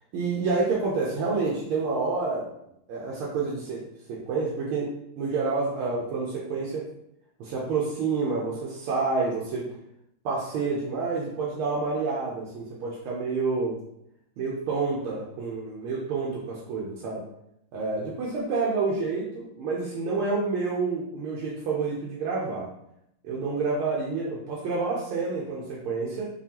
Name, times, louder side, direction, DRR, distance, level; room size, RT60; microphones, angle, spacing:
voice 1, 0.1-2.5 2.9-6.9 7.4-9.7 10.2-13.8 14.4-17.2 17.7-22.7 23.2-26.3, right 4 dB, 85° right, -5 dB, 1.6 m, -28 dB
5.7 x 2.3 x 2.8 m, 0.79 s
omnidirectional pair, 2.3 m